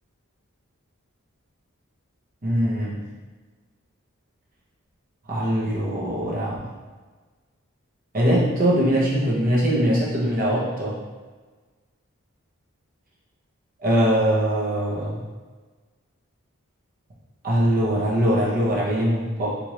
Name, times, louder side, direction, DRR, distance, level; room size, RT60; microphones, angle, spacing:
voice 1, 2.4-3.0 5.3-6.6 8.1-11.0 13.8-15.2 17.4-19.5, equal, 40° right, -5 dB, 0.9 m, -22 dB
4.7 x 2.6 x 3.0 m, 1.3 s
head